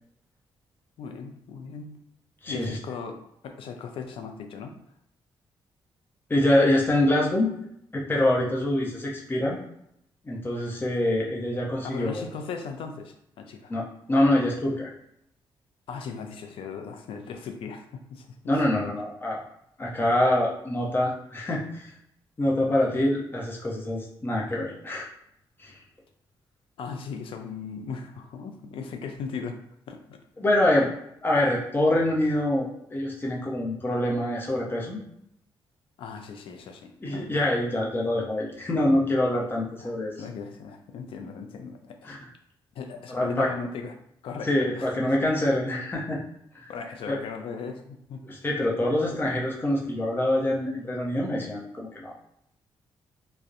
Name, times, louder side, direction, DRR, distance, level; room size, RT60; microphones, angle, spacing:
voice 1, 1.0-2.0 2.5-4.8 11.8-13.7 15.9-18.6 26.8-29.6 29.9-30.2 36.0-37.3 39.8-42.2 42.8-43.9 44.2-45.2 46.7-48.3 48.6-48.7 49.1-49.2, left 5 dB, 70° left, 5 dB, 0.4 m, -38 dB
voice 2, 2.4-2.8 6.3-7.5 7.9-9.6 10.2-12.2 13.7-13.8 14.1-14.9 18.5-19.4 19.8-21.9 22.4-25.1 25.6-25.7 30.4-30.9 31.2-35.0 37.0-40.1 42.0-42.2 43.1-43.5 44.4-46.2 46.5-46.7 47.1-47.2 48.2-52.1, left 1 dB, 20° left, -3 dB, 0.7 m, -25 dB
2.6 x 2.0 x 2.4 m, 0.75 s
cardioid pair, 90°, 9 cm